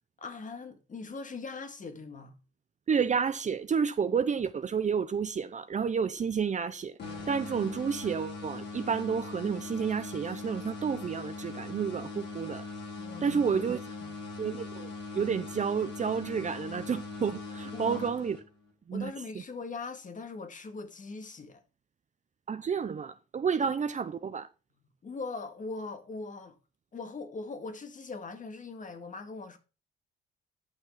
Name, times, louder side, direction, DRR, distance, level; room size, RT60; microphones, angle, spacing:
voice 1, 0.2-2.4 13.0-13.6 14.0-14.1 17.7-18.1 18.9-21.6 23.6-23.7 25.0-26.6 26.9-29.6, left 3 dB, 40° left, 2.1 m, -41 dB
voice 2, 2.9-7.0 7.3-12.6 13.2-13.8 14.4-18.4 18.9-19.1 22.5-24.5, right 6 dB, 35° right, 0.8 m, -30 dB
sound 1, 7.0-18.7, left 3 dB, 60° left, 5.8 m, -41 dB
11.0 x 6.1 x 5.7 m
cardioid pair, 90°, 20 cm